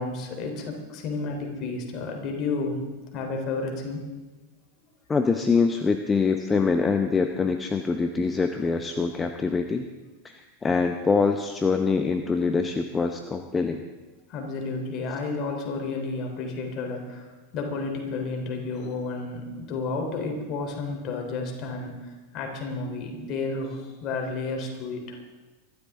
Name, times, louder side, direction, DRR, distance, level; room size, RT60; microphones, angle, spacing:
voice 1, 0.0-2.8 3.1-4.0 14.3-25.2, left 3 dB, 45° left, 2 dB, 3.6 m, -31 dB
voice 2, 5.1-9.9 10.2-13.8, left 4 dB, 20° left, 6 dB, 0.9 m, -24 dB
24.0 x 12.5 x 3.7 m, 1.2 s
figure-of-eight pair, 90°, 0 cm